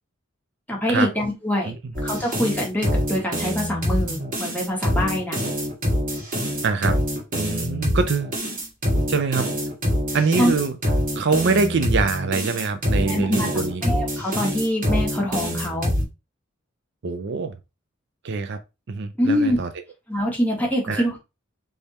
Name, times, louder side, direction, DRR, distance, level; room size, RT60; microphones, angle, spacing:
voice 1, 0.7-1.7 2.0-5.4 10.4-10.5 13.1-13.5 13.8-15.9 19.2-19.6 20.1-21.2, equal, 10° left, 1.6 m, -24 dB
sound 1, 1.9-16.0, equal, 45° right, 1.9 m, -25 dB
voice 2, 6.6-7.0 7.3-8.4 9.1-9.5 10.1-10.8 11.2-13.8 17.0-17.6 18.2-18.6 18.9-19.7 20.9-21.1, right 4 dB, 60° right, 0.5 m, -24 dB
3.5 x 3.4 x 4.1 m
head